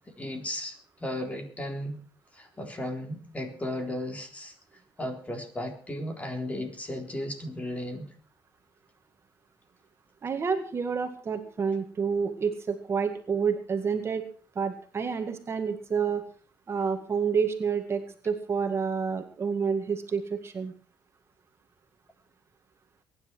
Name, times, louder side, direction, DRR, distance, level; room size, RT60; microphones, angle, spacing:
voice 1, 0.2-2.0 2.3-4.5 5.0-8.1, left 1 dB, 20° left, 4 dB, 3.9 m, -35 dB
voice 2, 10.2-14.2 14.6-16.3 16.7-20.7, right 6 dB, 35° right, 6 dB, 2.0 m, -29 dB
22.5 x 10.5 x 4.5 m, 0.41 s
cardioid pair, 115°, 7 cm